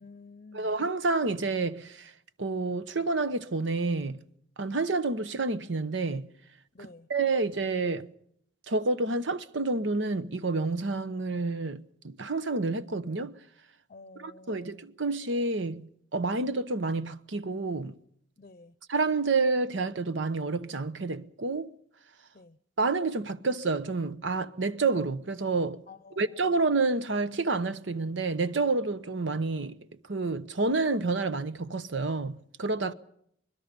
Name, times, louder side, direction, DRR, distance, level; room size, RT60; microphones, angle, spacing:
voice 1, 0.0-0.8 6.7-7.1 13.9-14.9 18.4-18.7 22.3-22.6 25.9-26.6 32.8-32.9, left 3 dB, 40° left, 0.7 m, -50 dB
voice 2, 0.5-2.1 2.4-4.2 4.6-6.3 6.8-8.1 8.7-13.3 14.2-17.9 18.9-21.7 22.8-25.8 26.2-29.8 30.1-32.9, right 3 dB, 70° right, 1.0 m, -29 dB
25.0 x 21.5 x 5.3 m
head